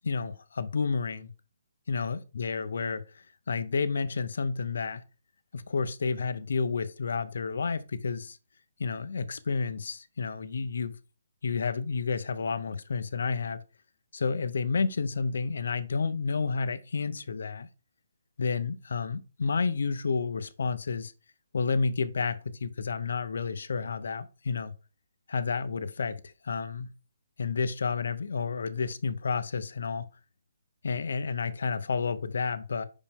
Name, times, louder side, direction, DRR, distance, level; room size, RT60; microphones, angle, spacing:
voice 1, 0.0-1.3 1.9-5.0 5.5-8.4 8.8-10.9 11.4-13.6 14.1-17.7 18.4-21.1 21.5-24.7 25.3-26.9 27.4-30.0 30.8-32.8, left 5 dB, 60° left, 0.7 m, -30 dB
5.4 x 5.0 x 3.5 m
hypercardioid pair, 175°, 0 cm